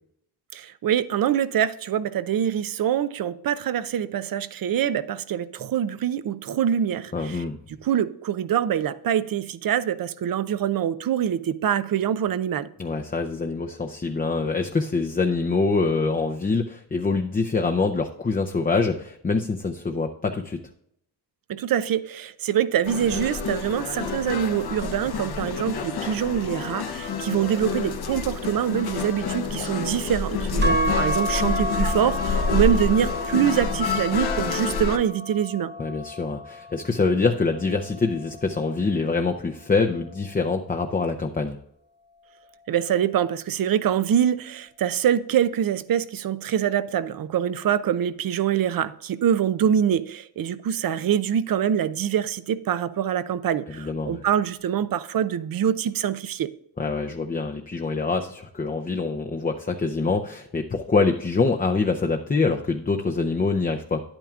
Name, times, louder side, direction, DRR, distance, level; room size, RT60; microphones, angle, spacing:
voice 1, 0.5-7.4 7.8-12.7 21.5-35.7 42.7-56.5, right 9 dB, 60° right, 0.6 m, -24 dB
voice 2, 7.1-7.6 12.8-20.6 30.6-30.8 35.8-41.6 53.8-54.2 56.8-64.0, left 4 dB, 20° left, 0.6 m, -25 dB
sound 1, 22.8-35.0, left 4 dB, 70° left, 1.1 m, -28 dB
sound 2, 30.6-38.8, left 1 dB, 25° right, 0.9 m, -32 dB
10.0 x 8.9 x 2.4 m
cardioid pair, 75°, 40 cm